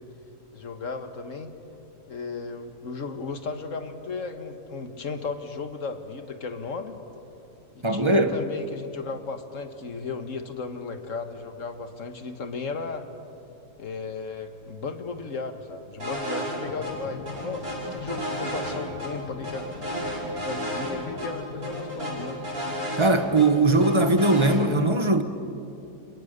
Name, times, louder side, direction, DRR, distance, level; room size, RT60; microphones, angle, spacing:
voice 1, 0.5-1.5 2.1-7.0 7.8-13.1 13.8-19.7 20.4-22.4, left 4 dB, 50° left, 1.9 m, -35 dB
voice 2, 7.8-8.3 23.0-25.2, right 2 dB, 20° right, 1.2 m, -20 dB
sound 1, 16.0-16.5 16.8-16.9 17.3-19.1 19.4-20.9 21.2-21.3 21.6-23.5 23.8-24.6, right 1 dB, 60° right, 6.1 m, -32 dB
sound 2, 16.6-23.5, left 7 dB, 90° left, 1.9 m, -41 dB
29.5 x 29.5 x 6.8 m
omnidirectional pair, 1.8 m